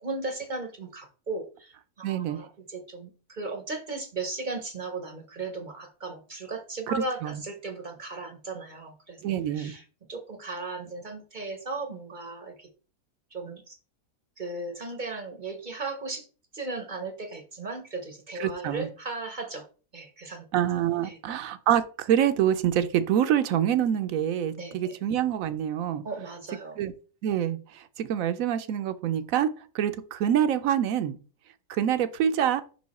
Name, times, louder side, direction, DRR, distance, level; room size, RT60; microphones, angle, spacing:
voice 1, 0.0-9.2 9.5-9.8 10.1-12.7 13.3-13.8 14.4-16.3 16.5-19.7 19.9-20.5 21.0-21.2 24.6-25.0 26.0-26.8, right 3 dB, 40° right, 6 dB, 0.7 m, -36 dB
voice 2, 2.0-2.4 6.9-7.4 9.2-9.7 18.4-18.9 20.5-26.0 26.8-26.9 27.2-31.2 31.7-32.6, right 10 dB, 70° right, 12 dB, 0.9 m, -26 dB
5.5 x 4.6 x 4.1 m, 0.37 s
omnidirectional pair, 1.7 m